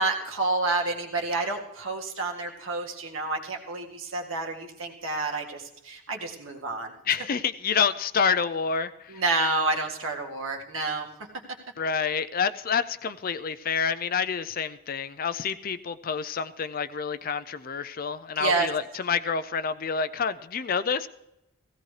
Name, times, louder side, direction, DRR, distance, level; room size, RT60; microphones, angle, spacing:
voice 1, 0.0-6.9 9.1-11.1 18.4-18.7, right 3 dB, 65° right, 1 dB, 1.9 m, -29 dB
voice 2, 7.1-9.2 11.8-21.1, left 6 dB, 40° left, 13 dB, 0.5 m, -28 dB
17.0 x 16.0 x 3.3 m, 0.88 s
head